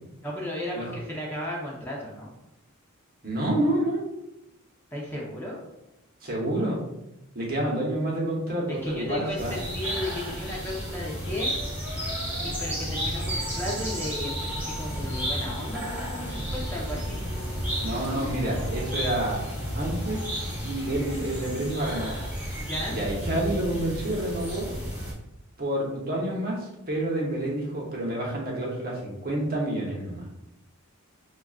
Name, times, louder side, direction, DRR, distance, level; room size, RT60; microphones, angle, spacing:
voice 1, 0.2-2.3 4.9-5.6 8.7-11.6 12.4-17.2 22.6-23.0, left 1 dB, 10° left, -4 dB, 0.6 m, -34 dB
voice 2, 3.2-4.0 6.2-6.8 7.3-9.6 17.8-19.5 19.7-22.2 22.9-24.7 25.6-30.3, right 1 dB, 45° right, -3 dB, 0.9 m, -29 dB
Train Leaving Station, 8.7-22.7, left 2 dB, 80° left, 0.6 m, -42 dB
sound 1, 9.4-25.1, equal, 10° right, 1.2 m, -32 dB
5.9 x 2.4 x 2.4 m, 0.90 s
head